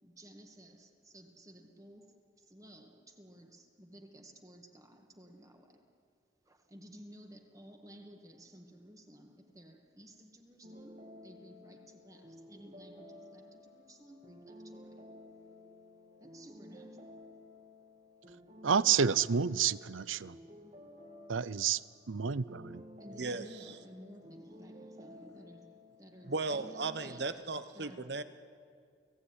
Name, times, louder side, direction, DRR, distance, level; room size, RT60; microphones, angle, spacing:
voice 1, 0.0-5.9 6.4-15.1 16.2-17.2 20.8-20.9 21.9-22.0 22.9-27.4 27.7-28.2, equal, 15° right, 4 dB, 1.9 m, -55 dB
sound 1, 10.6-27.2, left 1 dB, 35° right, 2.9 m, -53 dB
voice 2, 18.6-20.3 21.3-21.8 22.1-22.8, right 7 dB, 90° right, 19 dB, 0.7 m, -29 dB
voice 3, 26.3-28.2, right 3 dB, 60° right, 11 dB, 1.1 m, -36 dB
29.5 x 17.5 x 9.8 m, 2.2 s
head